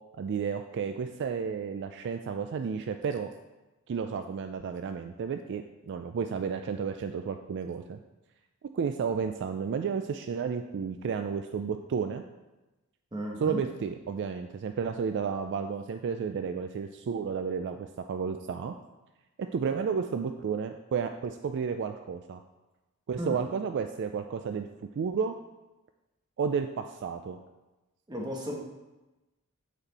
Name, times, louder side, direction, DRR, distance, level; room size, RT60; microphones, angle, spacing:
voice 1, 0.2-3.3 3.9-8.0 8.7-12.2 13.4-18.7 19.5-22.4 23.1-24.7 25.0-25.3 26.4-27.4, right 6 dB, 55° right, 7 dB, 0.3 m, -32 dB
voice 2, 13.1-13.6 23.2-23.4 28.1-28.6, equal, 20° right, 0 dB, 1.1 m, -34 dB
8.0 x 4.3 x 4.1 m, 1.1 s
head